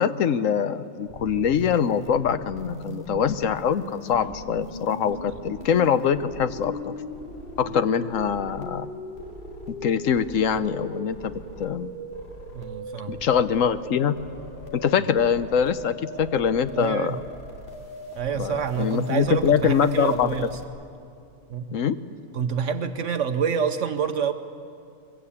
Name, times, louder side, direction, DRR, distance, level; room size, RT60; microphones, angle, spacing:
voice 1, 0.0-6.9 7.6-8.9 9.7-11.9 13.1-14.2 14.7-17.2 18.3-20.3 21.7-22.0, left 7 dB, 75° left, 12 dB, 1.2 m, -24 dB
sound 1, 1.1-20.6, equal, 40° left, 2.8 m, -39 dB
voice 2, 12.5-13.2 16.7-17.2 18.1-20.5 21.5-21.8 22.3-24.3, right 7 dB, 70° right, 8 dB, 1.2 m, -27 dB
22.0 x 22.0 x 8.6 m, 2.5 s
omnidirectional pair, 1.4 m